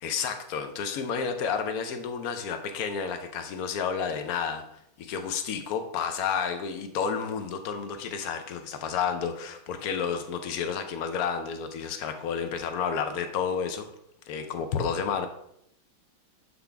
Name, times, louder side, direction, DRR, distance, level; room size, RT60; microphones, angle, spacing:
voice 1, 0.0-4.6 5.0-13.8 14.3-15.3, left 6 dB, 65° left, 7 dB, 0.9 m, -31 dB
8.0 x 3.9 x 3.5 m, 0.76 s
omnidirectional pair, 2.2 m